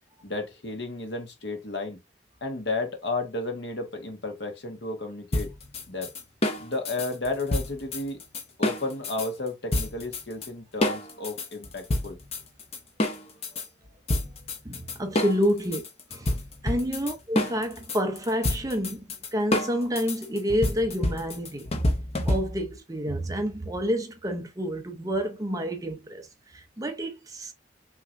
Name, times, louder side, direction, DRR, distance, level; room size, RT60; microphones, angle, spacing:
voice 1, 0.2-2.0 2.4-5.5 5.9-6.1 6.6-8.2 8.6-12.2 15.5-15.6, left 2 dB, 65° left, 1.4 m, -32 dB
sound 1, 5.3-9.3 9.7-10.5 10.8-13.7 14.1-22.8, left 1 dB, 35° left, 0.8 m, -28 dB
voice 2, 14.6-15.8 16.1-16.3 16.6-21.7 22.2-27.5, equal, 20° right, 0.6 m, -29 dB
5.8 x 3.0 x 2.6 m
head